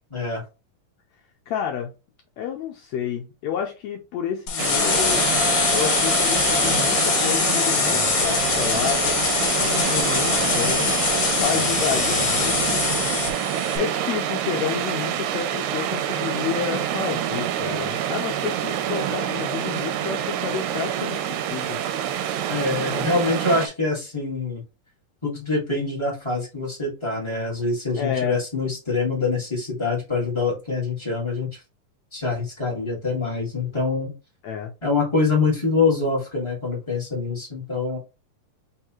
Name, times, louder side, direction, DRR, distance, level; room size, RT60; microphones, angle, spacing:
voice 1, 0.1-0.4 22.5-24.6 25.2-31.6 32.1-34.1 34.8-38.0, left 3 dB, 25° left, 0.6 m, -25 dB
voice 2, 1.5-1.9 2.4-5.3 5.7-9.2 9.6-10.9 11.3-12.8 13.7-21.8 22.8-23.0 28.0-28.4 34.4-34.7, left 9 dB, 80° left, 1.6 m, -30 dB
sound 1, 4.5-13.8, left 6 dB, 65° left, 1.5 m, -23 dB
sound 2, 4.6-23.7, right 10 dB, 80° right, 1.8 m, -26 dB
4.7 x 3.4 x 2.9 m
omnidirectional pair, 3.8 m